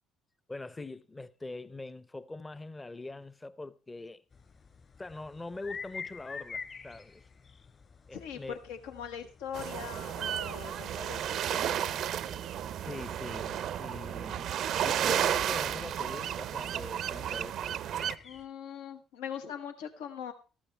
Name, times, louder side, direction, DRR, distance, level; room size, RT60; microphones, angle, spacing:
voice 1, 0.5-4.2 5.0-7.3 8.1-8.6 12.8-14.5 14.8-17.8, left 2 dB, 20° left, 0.8 m, -43 dB
sound 1, 4.3-18.5, left 5 dB, 45° left, 2.9 m, -50 dB
voice 2, 8.1-11.2 11.5-12.0 18.2-20.3, left 8 dB, 80° left, 1.3 m, -41 dB
sound 2, 9.5-18.2, right 10 dB, 65° right, 0.6 m, -33 dB
13.5 x 12.5 x 3.4 m
hypercardioid pair, 55°, 0 cm